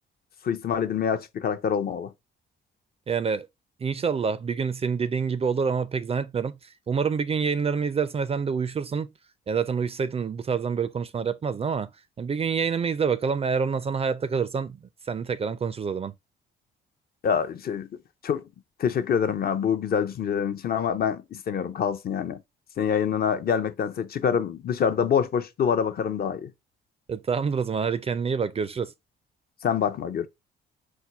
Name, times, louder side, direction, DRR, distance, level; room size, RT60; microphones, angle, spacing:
voice 1, 0.4-2.1 17.2-17.9 18.2-18.4 18.8-22.4 22.8-26.5 29.6-30.3, left 7 dB, 50° left, 0.6 m, -26 dB
voice 2, 3.1-3.5 3.8-6.5 6.9-9.1 9.5-11.9 12.2-14.8 15.1-16.1 27.1-28.9, right 6 dB, 30° right, 0.4 m, -27 dB
4.3 x 2.2 x 4.5 m
cardioid pair, 90°, 20 cm